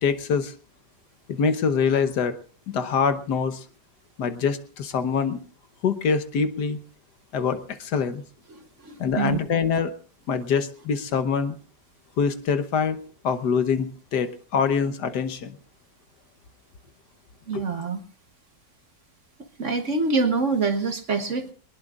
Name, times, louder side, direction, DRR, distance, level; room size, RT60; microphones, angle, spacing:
voice 1, 0.0-0.5 1.3-2.3 2.7-3.6 4.2-5.4 5.8-6.8 7.3-8.2 9.0-9.9 10.3-11.6 12.2-15.6 17.5-17.6, left 6 dB, 65° left, 11 dB, 1.5 m, -24 dB
voice 2, 8.5-9.4 17.5-18.0 19.6-21.5, right 4 dB, 45° right, 8 dB, 1.3 m, -25 dB
23.5 x 20.0 x 2.4 m, 0.38 s
omnidirectional pair, 2.0 m